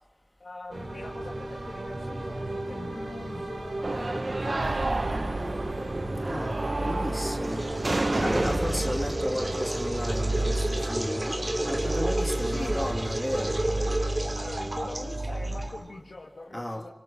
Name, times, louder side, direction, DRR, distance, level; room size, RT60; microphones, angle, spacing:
voice 1, 0.4-5.9 6.6-7.1 7.4-7.5 7.9-9.9 12.4-12.9 14.4-16.9, left 2 dB, 80° left, 2.7 m, -42 dB
sound 1, 0.7-15.7, right 2 dB, 75° right, 5.7 m, -33 dB
sound 2, 3.8-11.3, right 2 dB, 60° right, 1.4 m, -32 dB
voice 2, 6.3-7.6 8.2-11.4 11.7-13.6 16.5-16.9, left 1 dB, 15° left, 1.9 m, -33 dB
sound 3, 7.4-16.0, right 1 dB, 40° right, 3.2 m, -33 dB
27.0 x 26.5 x 6.6 m
wide cardioid pair, 50°, 0 cm